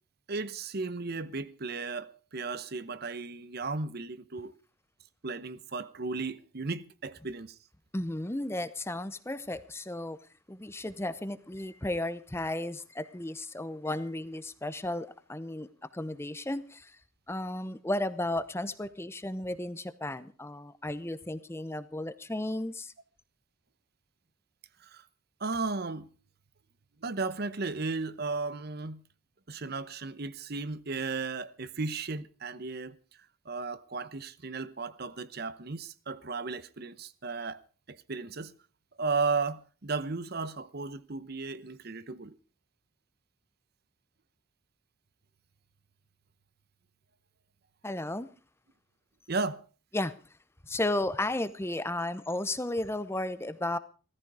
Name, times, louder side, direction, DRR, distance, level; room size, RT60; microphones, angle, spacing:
voice 1, 0.3-4.5 5.2-7.6 24.8-25.1 25.4-26.1 27.0-29.0 29.5-33.0 33.4-37.6 37.9-38.5 39.0-42.3 49.3-49.7, right 4 dB, 50° right, 0.9 m, -35 dB
voice 2, 7.9-10.2 10.5-17.0 17.3-22.9 47.8-48.3 49.9-50.1 50.7-53.8, left 1 dB, 10° left, 0.7 m, -34 dB
16.5 x 14.5 x 4.8 m
head